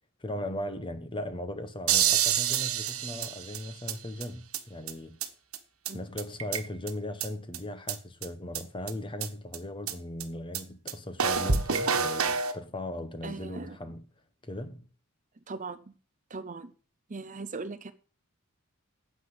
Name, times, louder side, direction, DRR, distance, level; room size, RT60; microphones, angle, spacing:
voice 1, 0.2-5.2 5.9-14.0 14.4-14.9, left 1 dB, 25° left, 1.1 m, -38 dB
sound 1, 1.9-3.9 4.2-4.3 4.5-4.6 4.9-5.0 5.2-5.3 5.5-5.6 5.9-6.0 6.2-6.9 7.2-7.3 7.5-7.6 7.9-8.0 8.2-8.3 8.6-8.7 8.9-9.0 9.2-9.3 9.5-9.6 9.9-10.0 10.2-10.3 10.5-10.6 10.9-11.0 11.2-12.5, right 7 dB, 70° right, 1.3 m, -27 dB
voice 2, 13.2-13.8 15.5-15.9 16.3-16.7 17.1-17.9, right 3 dB, 35° right, 0.7 m, -39 dB
9.4 x 7.8 x 7.9 m
head